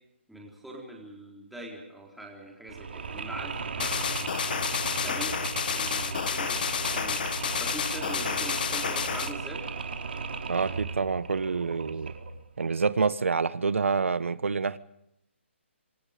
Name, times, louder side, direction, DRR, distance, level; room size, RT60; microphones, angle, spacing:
voice 1, 0.3-4.6 4.9-9.6, right 1 dB, ahead, 3.9 m, -43 dB
Mechanisms, 2.7-12.4, right 4 dB, 55° right, 3.8 m, -36 dB
sound 1, 3.8-9.3, left 7 dB, 45° left, 1.7 m, -30 dB
voice 2, 10.5-12.1 12.6-14.8, right 4 dB, 80° right, 1.4 m, -27 dB
27.0 x 25.5 x 5.2 m
hypercardioid pair, 170°, 7 cm